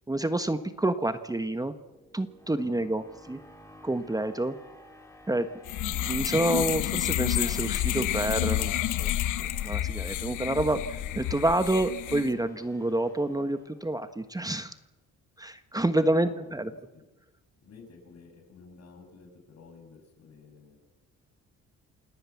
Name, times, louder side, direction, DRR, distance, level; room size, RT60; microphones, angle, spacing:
voice 1, 0.1-1.7 2.1-3.4 3.8-4.6 5.3-5.5 5.8-8.7 9.0-9.1 9.6-14.7 15.4-16.7, right 1 dB, 10° right, 10 dB, 1.3 m, -28 dB
sound 1, 1.3-14.2, left 1 dB, 10° left, 5.2 m, -54 dB
voice 2, 2.6-2.9 16.0-17.0 17.6-20.8, left 4 dB, 60° left, 4 dB, 7.5 m, -52 dB
sound 2, 5.7-12.3, left 13 dB, 90° left, 1.4 m, -29 dB
29.0 x 18.0 x 7.2 m, 1.0 s
cardioid pair, 90°, 30 cm